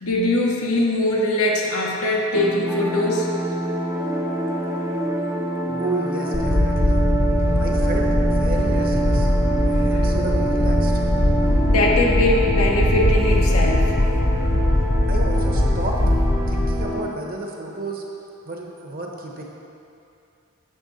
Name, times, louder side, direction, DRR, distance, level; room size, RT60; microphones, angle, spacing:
voice 1, 0.0-3.3 5.7-5.8 9.7-10.2 11.7-13.9, left 1 dB, 80° left, -2 dB, 1.0 m, -22 dB
sound 1, 2.3-17.1, right 1 dB, 15° right, 0.6 m, -26 dB
voice 2, 5.8-7.0 7.6-9.3 9.7-11.0 15.1-16.0 16.5-18.0 18.5-19.4, right 2 dB, 40° right, 0 dB, 1.0 m, -31 dB
sound 2, 6.3-16.9, left 1 dB, 35° left, 0.6 m, -20 dB
10.0 x 6.9 x 4.1 m, 2.7 s
head